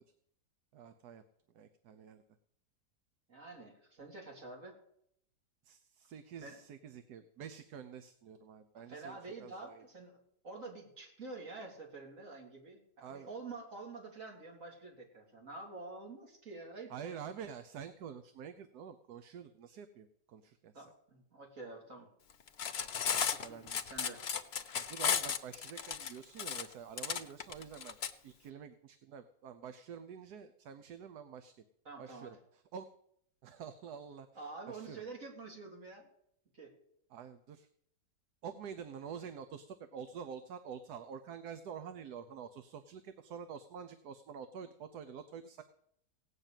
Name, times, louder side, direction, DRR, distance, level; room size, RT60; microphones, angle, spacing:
voice 1, 0.7-1.2 1.5-2.2 5.6-9.8 13.0-13.3 16.9-20.9 23.1-23.8 24.7-28.0 28.2-31.6 32.0-32.9 33.4-34.4 34.7-35.0 37.1-37.7 38.4-45.6, right 7 dB, 70° right, 10 dB, 1.3 m, -48 dB
voice 2, 3.3-4.8 6.4-6.6 8.9-10.2 10.4-17.2 20.7-22.1 23.2-24.2 31.8-32.4 34.3-36.1 36.5-36.7, right 3 dB, 50° right, 0 dB, 3.4 m, -48 dB
Cutlery silverware, 22.5-28.1, left 7 dB, 50° left, 0.8 m, -34 dB
17.0 x 6.6 x 9.0 m, 0.72 s
omnidirectional pair, 1.8 m